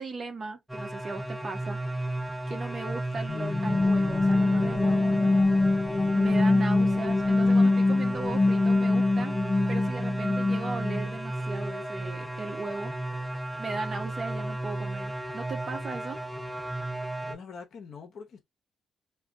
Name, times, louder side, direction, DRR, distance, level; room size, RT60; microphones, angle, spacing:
voice 1, 0.0-1.8 2.5-5.6 6.1-9.4 9.7-12.9 13.6-16.2, right 3 dB, 40° right, 0.9 m, -37 dB
sound 1, 0.7-17.4, right 1 dB, 5° right, 0.9 m, -34 dB
sound 2, 3.3-11.1, left 2 dB, 25° left, 0.4 m, -24 dB
voice 2, 17.3-18.4, left 5 dB, 60° left, 0.8 m, -44 dB
2.3 x 2.2 x 3.7 m
cardioid pair, 90°, 0 cm